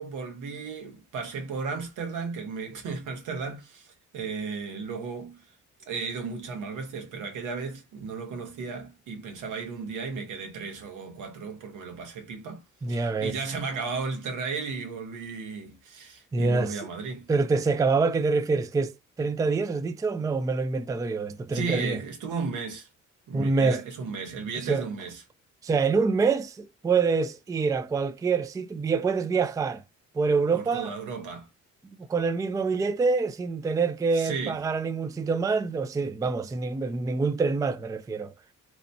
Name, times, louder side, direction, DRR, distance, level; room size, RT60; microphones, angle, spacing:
voice 1, 0.0-3.9 4.1-5.4 5.9-12.6 12.9-17.3 21.5-22.9 23.3-25.2 30.5-31.5 34.1-34.6, right 5 dB, 85° right, 1.0 m, -34 dB
voice 2, 12.8-13.4 16.3-16.8 17.3-22.0 23.3-23.8 24.6-24.9 25.6-29.8 30.1-30.9 32.0-38.3, right 4 dB, 10° right, 0.3 m, -26 dB
2.9 x 2.0 x 2.6 m
cardioid pair, 90°, 30 cm